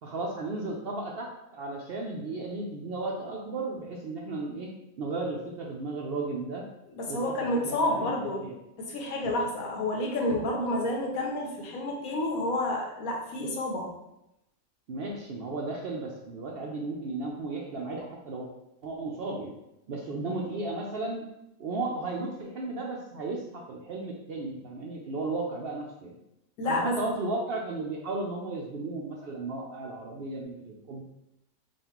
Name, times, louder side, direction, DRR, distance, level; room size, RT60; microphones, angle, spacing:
voice 1, 0.0-6.7 7.1-8.6 14.9-18.5 18.8-19.6 19.9-21.3 21.6-26.2 26.6-31.0, right 2 dB, 65° right, -1 dB, 0.6 m, -35 dB
voice 2, 6.9-8.5 8.8-13.9 26.6-27.1, left 1 dB, 85° left, 0 dB, 1.3 m, -29 dB
5.2 x 2.5 x 2.9 m, 0.86 s
omnidirectional pair, 1.4 m